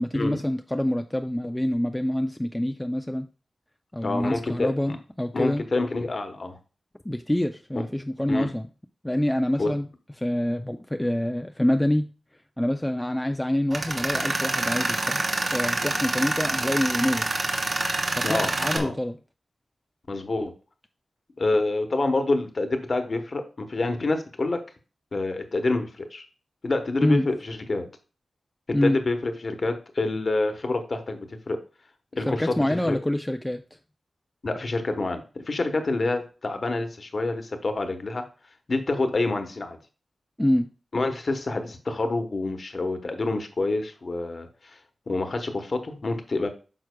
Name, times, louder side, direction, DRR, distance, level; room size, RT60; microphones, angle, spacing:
voice 1, 0.0-3.3 3.9-5.6 7.0-8.7 9.0-9.9 10.2-12.1 12.6-15.2 15.5-17.3 18.1-19.2 27.0-27.3 28.7-29.0 32.3-33.6 40.4-40.7, left 1 dB, 10° left, 6 dB, 0.4 m, -26 dB
voice 2, 4.0-5.0 5.3-6.6 8.3-8.5 9.6-9.7 18.2-18.9 20.1-20.5 21.4-24.6 25.1-26.2 26.6-27.9 28.7-31.6 32.2-33.0 34.4-38.2 38.7-39.8 40.9-44.7 45.1-46.5, left 2 dB, 45° left, 6 dB, 1.0 m, -27 dB
Tools, 13.7-18.8, right 2 dB, 45° right, 1.0 m, -27 dB
9.2 x 5.9 x 2.2 m, 0.34 s
wide cardioid pair, 130°, 0 cm